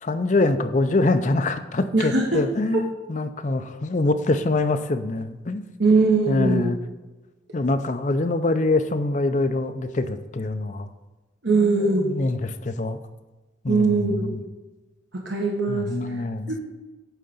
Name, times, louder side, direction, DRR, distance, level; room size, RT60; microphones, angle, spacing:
voice 1, 0.0-5.7 6.3-6.8 7.5-10.9 11.5-13.0 13.6-14.4 15.7-16.6, left 2 dB, 40° left, 9 dB, 0.5 m, -24 dB
voice 2, 1.9-2.4 5.8-6.7 11.4-12.2 13.7-14.3 15.1-15.9 16.5-16.6, right 3 dB, 70° right, -1 dB, 1.2 m, -21 dB
9.1 x 3.8 x 7.0 m, 1.1 s
head